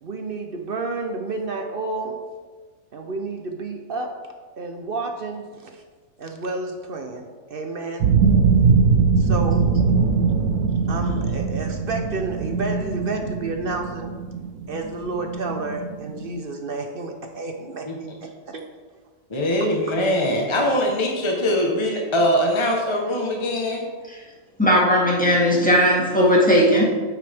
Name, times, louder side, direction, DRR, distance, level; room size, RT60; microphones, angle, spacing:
voice 1, 0.0-2.2 2.9-4.1 4.6-5.7 6.2-8.1 9.2-9.7 10.9-14.1 14.7-17.9 18.2-18.6, right 3 dB, 50° right, 4 dB, 0.7 m, -30 dB
sound 1, 8.0-16.4, right 5 dB, 90° right, 1.3 m, -21 dB
voice 2, 19.3-23.8, left 1 dB, 20° left, 0 dB, 1.0 m, -22 dB
voice 3, 24.6-26.8, equal, 5° left, -4 dB, 1.8 m, -17 dB
8.8 x 8.1 x 3.5 m, 1.4 s
omnidirectional pair, 1.6 m